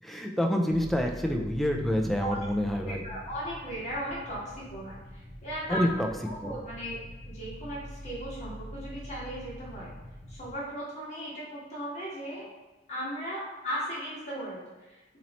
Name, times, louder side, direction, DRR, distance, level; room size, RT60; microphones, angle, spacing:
voice 1, 0.0-3.0 5.7-6.1 6.4-6.6, equal, ahead, 2 dB, 0.3 m, -27 dB
sound 1, 0.7-10.5, equal, 25° right, 0.7 m, -44 dB
voice 2, 2.8-5.9 6.2-7.0 7.2-9.9 10.3-12.5 12.9-15.2, equal, 40° left, -7 dB, 1.5 m, -37 dB
4.0 x 3.0 x 3.0 m, 1.1 s
head